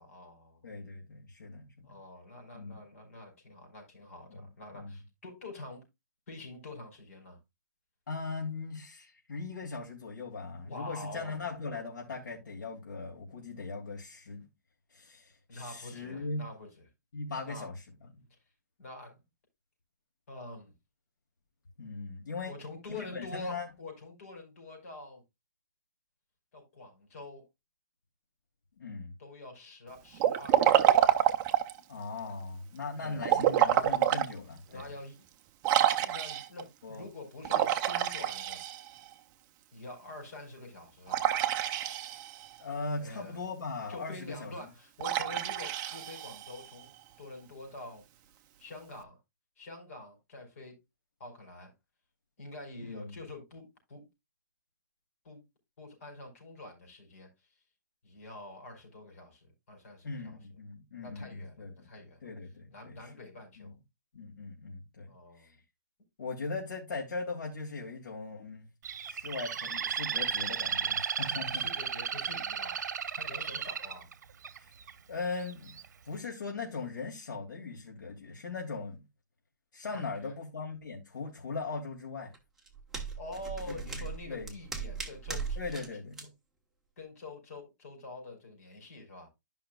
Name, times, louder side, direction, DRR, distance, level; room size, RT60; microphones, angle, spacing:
voice 1, 0.0-0.8 1.8-5.8 6.3-7.4 10.6-11.4 15.5-16.7 17.4-17.7 18.8-19.2 20.3-20.7 22.4-25.2 26.5-27.5 29.2-31.3 33.0-33.9 34.7-35.2 36.0-38.6 39.7-41.4 42.9-43.5 43.9-48.0 48.6-49.2 49.6-50.8 51.2-51.7 52.4-54.1 55.2-55.4 55.8-57.3 58.0-60.4 61.0-62.2 62.7-63.8 65.1-65.5 71.2-72.8 73.2-74.1 79.9-80.3 83.2-85.8 87.0-89.3, left 2 dB, 50° left, 4.5 m, -46 dB
voice 2, 0.6-1.9 2.5-2.8 4.3-5.0 8.1-14.4 14.9-16.4 17.1-17.8 21.8-22.5 22.9-23.7 28.8-29.1 31.9-34.9 36.8-37.1 42.6-44.7 52.8-53.2 60.0-61.9 62.2-63.1 63.6-63.7 64.1-65.5 66.2-68.7 69.0-71.6 74.6-74.7 75.1-75.8 76.0-79.0 79.7-82.3 83.7-84.5 85.6-86.1, left 4 dB, 80° left, 2.9 m, -39 dB
Liquid, 30.2-31.8 33.2-34.3 34.8-34.9 35.6-36.6 37.4-39.1 41.1-42.5 45.0-46.6, right 11 dB, 20° right, 0.5 m, -27 dB
Bird, 68.8-74.9 75.5-75.9, right 7 dB, 65° right, 0.9 m, -34 dB
sound 1, 82.3-85.9 86.1-86.3, right 5 dB, 5° right, 1.0 m, -38 dB
13.0 x 5.6 x 2.3 m
hypercardioid pair, 165°, 10 cm